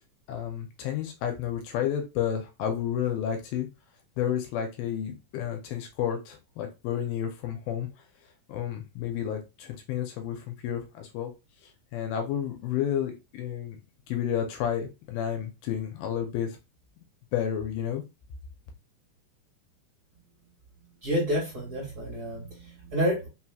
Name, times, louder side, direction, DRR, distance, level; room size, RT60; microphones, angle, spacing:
voice 1, 0.3-3.7 4.2-7.9 8.5-11.3 11.9-13.8 14.1-16.5 17.3-18.0, left 9 dB, 80° left, 4 dB, 2.4 m, -31 dB
voice 2, 21.0-23.3, equal, 35° right, -4 dB, 2.2 m, -29 dB
5.6 x 3.0 x 2.3 m, 0.27 s
omnidirectional pair, 4.3 m